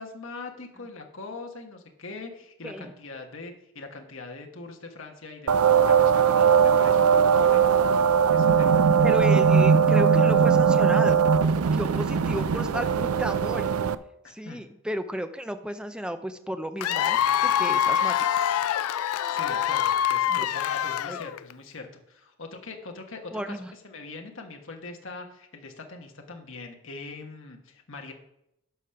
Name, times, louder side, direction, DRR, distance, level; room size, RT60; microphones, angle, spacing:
voice 1, 0.0-7.7 8.3-8.8 14.2-14.6 19.3-28.1, left 3 dB, 60° left, 3 dB, 1.3 m, -42 dB
sound 1, 5.5-13.9, right 6 dB, 75° right, 0.4 m, -20 dB
voice 2, 9.0-11.2 11.7-13.7 14.3-18.1 20.3-20.4 21.1-21.2 23.3-23.7, equal, 5° right, 9 dB, 0.4 m, -33 dB
Cheering / Applause / Crowd, 16.8-21.5, left 10 dB, 75° left, 0.3 m, -25 dB
11.5 x 5.0 x 5.7 m, 0.82 s
head